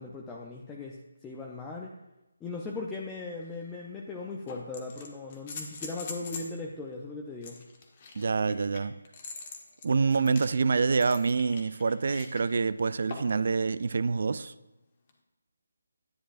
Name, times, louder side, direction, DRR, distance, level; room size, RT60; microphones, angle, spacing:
voice 1, 0.0-2.0 2.4-7.6, left 3 dB, 10° left, 0.6 m, -38 dB
sound 1, 3.4-3.5 4.5-6.6 7.4-12.4 13.1-13.4 15.1-15.2, left 4 dB, 35° left, 1.2 m, -43 dB
voice 2, 8.2-9.0 9.8-14.5, right 4 dB, 55° right, 0.3 m, -26 dB
10.0 x 9.7 x 2.5 m
figure-of-eight pair, 155°, 0 cm